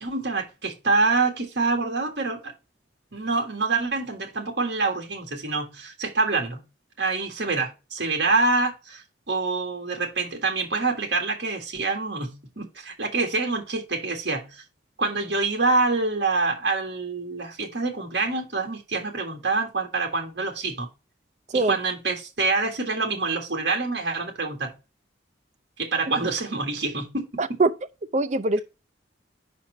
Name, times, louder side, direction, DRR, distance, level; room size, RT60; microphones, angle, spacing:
voice 1, 0.0-2.5 3.1-6.6 7.0-14.6 15.0-20.9 21.7-24.7 25.8-27.3, right 3 dB, 60° right, 1.6 m, -26 dB
voice 2, 27.4-27.7 28.1-28.6, right 2 dB, 40° right, 0.5 m, -22 dB
5.2 x 4.3 x 6.1 m
head